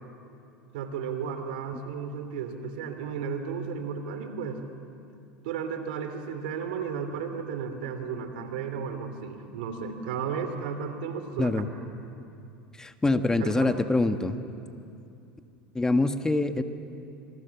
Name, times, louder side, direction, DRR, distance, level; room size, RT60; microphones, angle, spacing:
voice 1, 0.7-4.6 5.4-11.6 13.0-14.2, right 6 dB, 80° right, 8 dB, 2.9 m, -34 dB
voice 2, 12.8-14.4 15.7-16.6, left 2 dB, 15° left, 8 dB, 1.4 m, -25 dB
28.5 x 27.0 x 7.1 m, 2.6 s
supercardioid pair, 95°, 5 cm